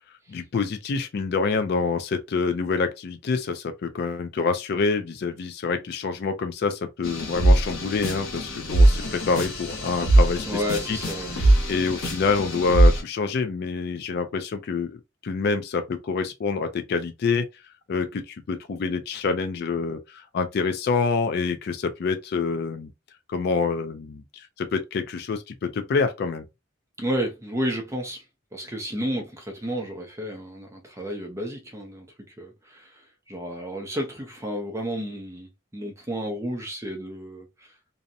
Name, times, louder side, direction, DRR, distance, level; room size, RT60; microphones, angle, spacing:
voice 1, 0.3-10.6 10.9-11.0 11.7-17.5 17.9-22.9 23.3-26.4, left 4 dB, 55° left, 0.3 m, -26 dB
sound 1, 7.0-13.0, right 1 dB, 85° left, 1.2 m, -21 dB
voice 2, 10.5-11.4 27.0-28.2 28.5-32.1 32.4-37.7, equal, 15° right, 0.5 m, -31 dB
2.6 x 2.0 x 2.5 m
head